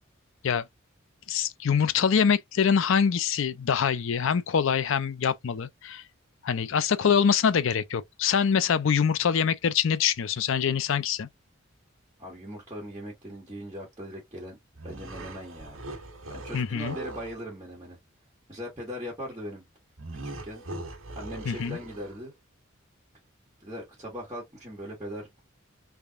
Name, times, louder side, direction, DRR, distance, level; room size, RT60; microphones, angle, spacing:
voice 1, 1.3-6.0 6.4-11.3 16.5-17.0 21.5-21.8, left 7 dB, 70° left, 0.4 m, -24 dB
voice 2, 12.2-14.6 14.8-15.8 16.3-18.0 18.5-19.6 20.2-20.6 21.1-22.3 23.6-25.3, equal, 20° right, 1.7 m, -39 dB
sound 1, 14.7-17.4 20.0-22.3, right 2 dB, 85° right, 1.4 m, -40 dB
3.4 x 3.4 x 2.5 m
head